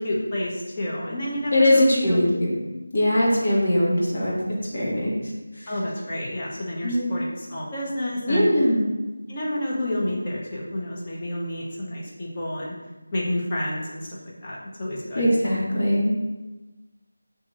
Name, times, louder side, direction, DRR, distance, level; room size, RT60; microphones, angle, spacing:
voice 1, 0.0-2.4 3.1-3.4 5.7-8.5 9.3-12.7 13.1-15.3, left 1 dB, 25° left, -6 dB, 1.0 m, -29 dB
voice 2, 1.5-2.6 2.9-4.3 4.7-5.1 6.8-7.1 8.3-8.8 15.1-16.1, left 1 dB, 50° left, -4 dB, 1.4 m, -21 dB
6.8 x 2.8 x 2.5 m, 1.1 s
figure-of-eight pair, 170°, 0 cm